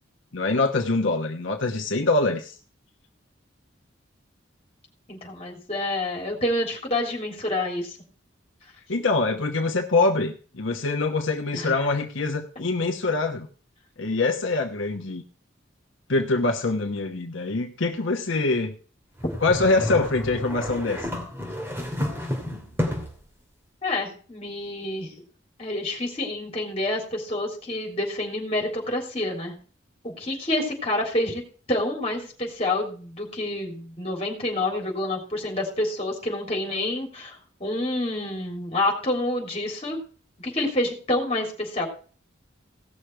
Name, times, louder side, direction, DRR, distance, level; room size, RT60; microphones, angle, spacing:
voice 1, 0.3-2.5 8.9-13.5 14.0-15.2 16.1-18.7 19.4-21.1, left 3 dB, 75° left, 4 dB, 1.1 m, -24 dB
voice 2, 5.1-8.0 11.5-11.9 23.8-25.1 25.6-29.5 30.0-31.4 31.7-37.4 37.6-40.0 40.4-41.9, left 1 dB, 30° left, 1 dB, 3.5 m, -28 dB
sound 1, 19.2-23.2, left 1 dB, 10° right, 2.5 m, -30 dB
17.0 x 6.4 x 4.6 m, 0.41 s
head